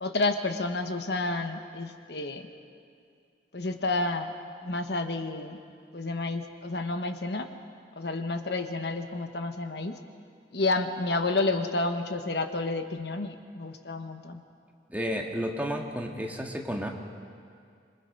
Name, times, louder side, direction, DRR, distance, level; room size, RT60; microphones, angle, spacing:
voice 1, 0.0-2.5 3.5-4.3 4.6-5.6 5.9-7.5 8.0-10.0 10.5-14.4, left 2 dB, 65° left, 7 dB, 1.2 m, -30 dB
voice 2, 14.9-16.9, equal, 10° right, 1 dB, 1.7 m, -32 dB
26.5 x 22.5 x 5.4 m, 2.2 s
head